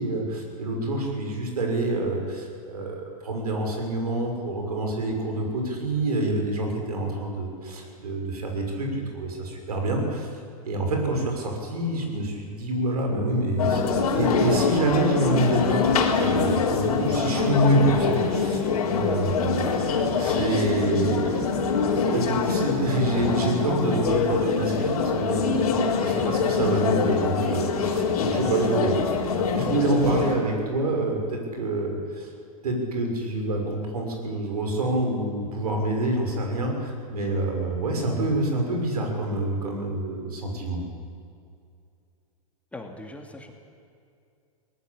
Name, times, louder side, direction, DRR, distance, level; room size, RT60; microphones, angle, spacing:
voice 1, 0.0-10.3 10.6-13.8 14.1-15.8 16.1-19.8 20.1-21.6 21.9-29.1 29.5-32.3 32.6-40.8, right 1 dB, 85° right, 2 dB, 6.4 m, -27 dB
sound 1, 13.6-30.4, left 5 dB, 80° left, 4.0 m, -24 dB
voice 2, 42.7-43.5, left 2 dB, 5° left, 2 dB, 2.5 m, -40 dB
22.0 x 18.5 x 8.8 m, 2.5 s
hypercardioid pair, 120°, 19 cm